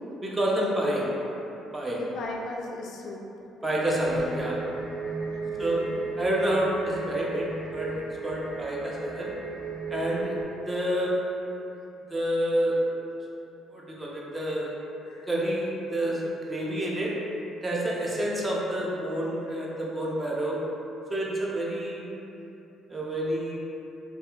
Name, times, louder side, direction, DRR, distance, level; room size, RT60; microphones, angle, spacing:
voice 1, 0.2-1.0 1.7-2.0 3.6-4.6 5.6-5.8 6.2-9.3 9.9-10.3 10.7-11.2 12.1-12.8 13.7-14.7 15.3-17.1 17.6-20.6 21.1-22.0 22.9-23.5, right 1 dB, 25° right, -4 dB, 0.5 m, -28 dB
voice 2, 1.9-3.2 5.3-5.9 15.0-15.3 19.4-19.6, left 2 dB, 70° left, -1 dB, 0.3 m, -38 dB
sound 1, 3.9-10.4, right 4 dB, 85° right, 0.4 m, -35 dB
sound 2, 4.1-4.6, left 2 dB, 40° right, 1.1 m, -37 dB
2.6 x 2.3 x 2.3 m, 2.9 s
cardioid pair, 90°, 0 cm